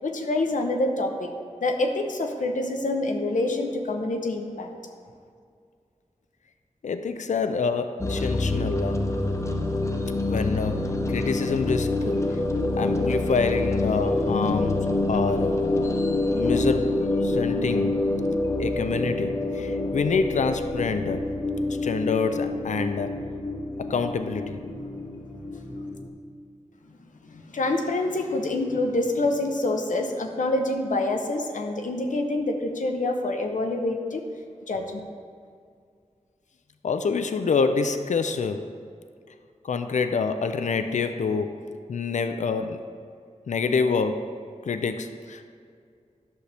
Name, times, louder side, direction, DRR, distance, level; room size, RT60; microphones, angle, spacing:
voice 1, 0.0-1.3 1.6-4.7 27.2-34.2 34.7-35.0, left 2 dB, 90° left, 4 dB, 0.8 m, -26 dB
voice 2, 6.8-9.0 10.2-12.4 12.8-15.6 16.3-17.9 18.6-21.3 21.7-23.1 23.8-24.6 36.8-38.7 39.6-42.9 43.5-44.3 44.6-45.4, left 5 dB, 75° left, 9 dB, 0.4 m, -27 dB
sound 1, 8.0-26.1, left 2 dB, 25° left, 0.7 m, -27 dB
11.0 x 6.4 x 3.4 m, 2.2 s
wide cardioid pair, 90°, 13 cm